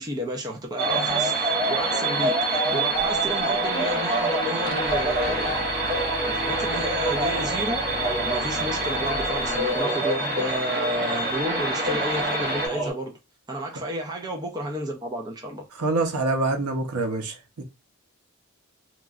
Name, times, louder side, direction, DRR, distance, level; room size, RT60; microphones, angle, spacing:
voice 1, 0.0-5.6 6.2-7.8 8.2-13.2 13.5-15.7, right 1 dB, 15° right, 0.4 m, -31 dB
sound 1, 0.8-12.7, right 2 dB, 45° right, 1.0 m, -26 dB
sound 2, 0.9-12.9, right 2 dB, 5° left, 1.0 m, -33 dB
sound 3, 2.9-3.9 4.2-4.3 4.6-9.8, equal, 65° left, 0.6 m, -41 dB
voice 2, 15.8-17.6, right 2 dB, 90° right, 0.7 m, -25 dB
2.9 x 2.3 x 2.4 m
head